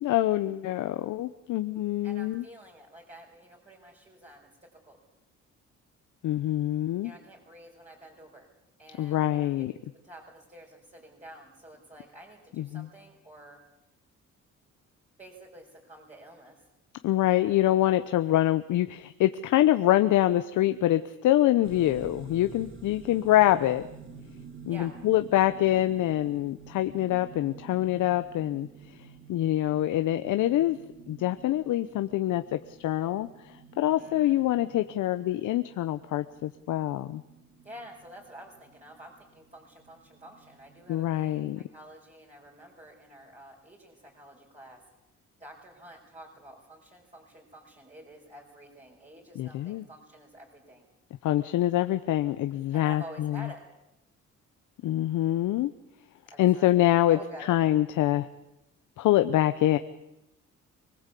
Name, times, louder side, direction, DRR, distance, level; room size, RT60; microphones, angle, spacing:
voice 1, 0.0-2.4 6.2-7.1 9.0-9.7 12.6-12.9 17.0-23.9 24.7-29.0 29.3-30.8 31.1-37.2 40.9-41.6 49.4-49.8 51.2-53.5 54.8-55.7 56.4-58.3 59.0-59.8, left 14 dB, 80° left, 10 dB, 0.9 m, -25 dB
voice 2, 2.0-5.0 7.0-8.5 8.8-13.6 15.2-16.6 24.7-24.9 33.9-34.4 37.6-44.8 45.4-50.9 52.7-53.6 56.3-57.6, right 1 dB, 25° right, -3 dB, 5.9 m, -49 dB
sound 1, 21.6-41.0, right 5 dB, 40° right, 2.9 m, -50 dB
25.0 x 19.5 x 8.4 m, 0.89 s
cardioid pair, 90°, 30 cm